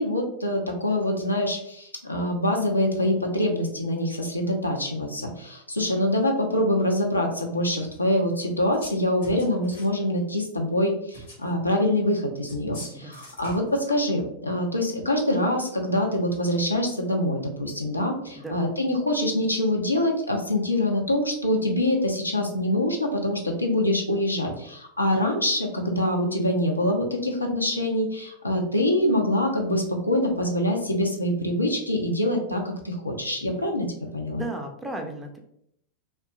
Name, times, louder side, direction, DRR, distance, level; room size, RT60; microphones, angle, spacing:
voice 1, 0.0-33.9 34.1-34.4, left 1 dB, 85° left, 1 dB, 0.5 m, -25 dB
sound 1, 8.6-9.0 9.2-10.0 11.1-11.5 12.5-13.7, equal, 60° left, 0.9 m, -43 dB
voice 2, 34.3-35.4, right 2 dB, 10° right, 3 dB, 0.4 m, -34 dB
2.8 x 2.2 x 2.3 m, 0.71 s
figure-of-eight pair, 90°, 0 cm